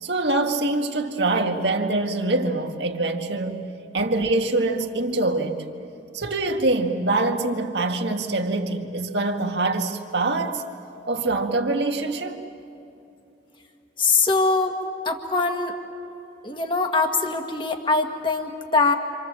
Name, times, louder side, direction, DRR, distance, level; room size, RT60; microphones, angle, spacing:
voice 1, 0.0-3.6 3.9-5.7 6.1-10.6 11.1-12.4, right 2 dB, 70° right, 1.9 m, -24 dB
voice 2, 14.0-14.8 15.1-15.7 16.4-18.9, left 3 dB, 25° left, 1.7 m, -22 dB
29.0 x 26.5 x 7.4 m
head